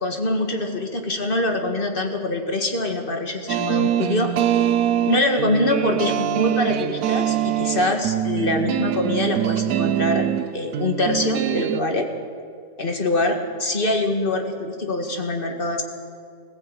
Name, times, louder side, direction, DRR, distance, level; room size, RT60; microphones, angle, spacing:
voice 1, 0.0-4.3 5.1-10.3 10.5-12.1 12.8-15.8, left 2 dB, 30° left, 4 dB, 2.1 m, -24 dB
sound 1, 3.5-11.8, right 11 dB, 65° right, 1.1 m, -23 dB
21.0 x 15.0 x 9.1 m, 2.3 s
omnidirectional pair, 1.9 m